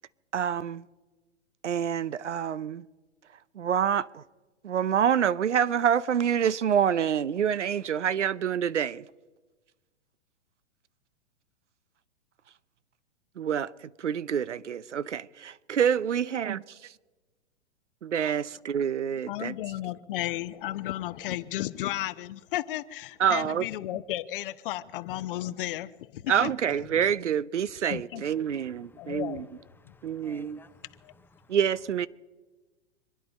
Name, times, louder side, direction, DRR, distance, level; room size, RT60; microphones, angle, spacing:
voice 1, 0.3-0.8 1.6-2.8 3.6-4.2 4.6-9.0 13.4-13.7 14.0-16.6 18.0-19.5 23.2-23.6 26.3-29.5 30.0-30.6 31.5-32.1, right 8 dB, 85° right, 0.7 m, -27 dB
voice 2, 19.3-26.5 27.9-28.2 29.0-29.6 29.9-30.0 31.0-31.1, left 15 dB, 50° left, 0.9 m, -34 dB
voice 3, 28.4-29.2 29.8-31.6, left 3 dB, 5° left, 0.7 m, -56 dB
26.0 x 10.5 x 5.3 m
hypercardioid pair, 110°, 35 cm